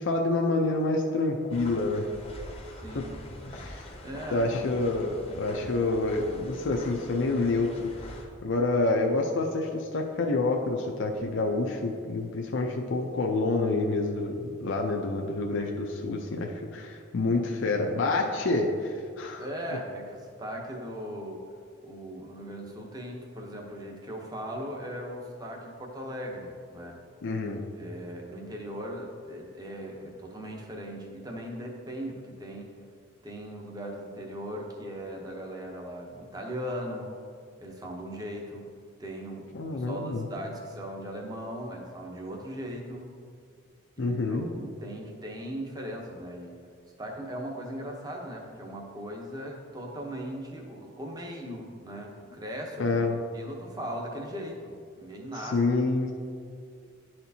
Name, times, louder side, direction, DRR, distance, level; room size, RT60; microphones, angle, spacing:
voice 1, 0.0-2.1 2.9-3.0 3.5-3.9 4.3-7.8 8.4-19.5 27.2-27.6 39.5-40.2 44.0-44.5 52.8-53.2 55.5-56.1, left 2 dB, 65° left, 1 dB, 0.5 m, -27 dB
sound 1, 1.5-8.2, left 1 dB, 30° left, 0.7 m, -44 dB
voice 2, 2.8-3.1 4.0-4.5 19.4-21.5 21.8-27.0 27.8-32.7 33.2-37.1 37.6-38.7 39.0-43.1 44.0-46.5 47.0-53.0 53.3-55.6, equal, 20° right, 0 dB, 0.7 m, -38 dB
11.0 x 4.3 x 2.7 m, 2.2 s
head